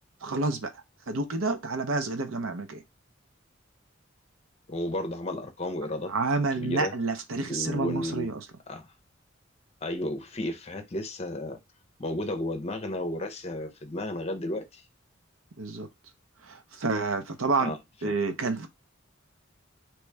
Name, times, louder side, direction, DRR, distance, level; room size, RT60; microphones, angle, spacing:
voice 1, 0.2-0.7 1.1-2.8 6.1-8.5 15.6-15.9 16.5-17.7 18.0-18.7, right 3 dB, 90° right, 0.7 m, -29 dB
voice 2, 4.7-6.1 6.6-6.9 7.5-8.3 8.7-8.9 9.8-11.6 12.0-14.8 17.6-17.8 18.0-18.1, left 1 dB, 30° left, 0.7 m, -33 dB
3.1 x 3.0 x 3.4 m
head